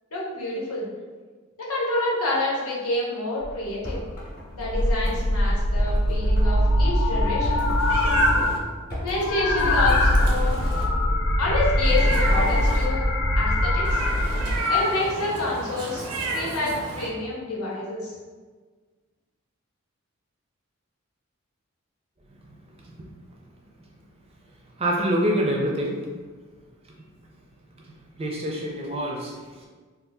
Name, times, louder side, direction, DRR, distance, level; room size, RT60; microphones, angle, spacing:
voice 1, 0.1-0.9 1.7-4.0 4.5-7.6 9.0-10.6 11.4-13.0 13.3-14.0 14.7-16.0 16.3-18.1, left 2 dB, 90° left, -5 dB, 0.9 m, -28 dB
sound 1, 3.4-3.5 3.9-4.2 4.6-8.6 8.9-14.6, left 1 dB, 60° left, 0.4 m, -22 dB
sound 2, 3.8-8.6 8.9-9.3 9.6-10.7, left 1 dB, 45° left, 0.7 m, -36 dB
Meow, 7.8-8.6 9.6-10.9 11.8-12.9 13.8-17.1, right 1 dB, 85° right, 0.5 m, -30 dB
voice 2, 24.8-26.0 28.2-29.7, equal, 25° right, -1 dB, 0.4 m, -26 dB
2.6 x 2.4 x 3.5 m, 1.4 s
head